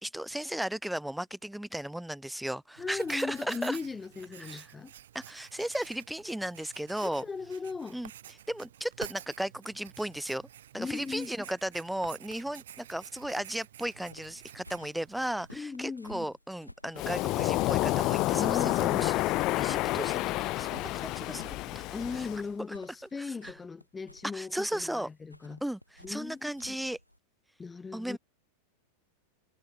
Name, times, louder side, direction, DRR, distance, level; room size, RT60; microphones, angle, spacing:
voice 1, 0.0-3.8 4.4-4.7 5.1-7.2 7.9-8.1 8.5-10.5 10.7-19.3 19.6-21.8 22.1-22.3 23.2-23.5 24.3-25.1 25.6-25.8 26.1-27.0 27.9-28.2, right 1 dB, ahead, 2.3 m, -35 dB
voice 2, 2.8-4.9 7.0-8.0 10.8-11.3 15.5-16.2 18.3-19.1 21.9-25.6 26.0-26.8 27.6-28.2, left 4 dB, 15° left, 0.9 m, -38 dB
Writing, 2.8-15.6, right 11 dB, 60° right, 2.1 m, -50 dB
sound 1, 13.1-27.2, equal, 90° left, 3.7 m, -54 dB
Waves surf, 17.0-22.4, left 19 dB, 40° left, 0.4 m, -29 dB
figure-of-eight pair, 90°, 0 cm